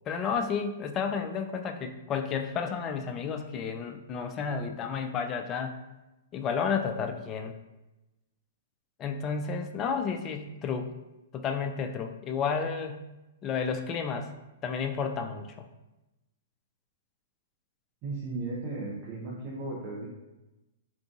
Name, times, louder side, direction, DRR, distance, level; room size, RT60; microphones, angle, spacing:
voice 1, 0.1-5.8 6.3-7.5 9.0-10.9 11.3-13.1 13.4-14.3 14.6-15.7, left 6 dB, 30° left, 5 dB, 0.3 m, -31 dB
voice 2, 18.0-20.1, right 3 dB, 40° right, -4 dB, 0.7 m, -35 dB
3.6 x 2.5 x 2.4 m, 1.0 s
hypercardioid pair, 120°, 0 cm